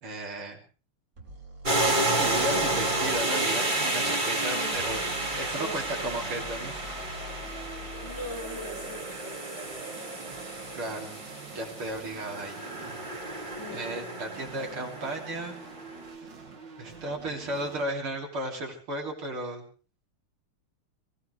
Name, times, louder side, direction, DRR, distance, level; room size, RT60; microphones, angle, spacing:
voice 1, 0.0-0.6 1.8-5.0 5.4-6.7 10.7-11.1 11.5-15.6 16.8-19.6, right 1 dB, 75° right, 1 dB, 4.0 m, -35 dB
sound 1, 1.2-3.2 4.6-9.0, left 2 dB, 40° right, 3.3 m, -45 dB
sound 2, 1.6-15.8, right 2 dB, 20° right, 2.2 m, -31 dB
sound 3, 3.2-17.9, right 5 dB, 55° right, 2.6 m, -47 dB
voice 2, 4.5-6.7 7.6-7.7 8.0-11.1 13.6-14.1, equal, 10° left, 0 dB, 5.4 m, -44 dB
23.5 x 17.0 x 3.3 m, 0.38 s
omnidirectional pair, 2.3 m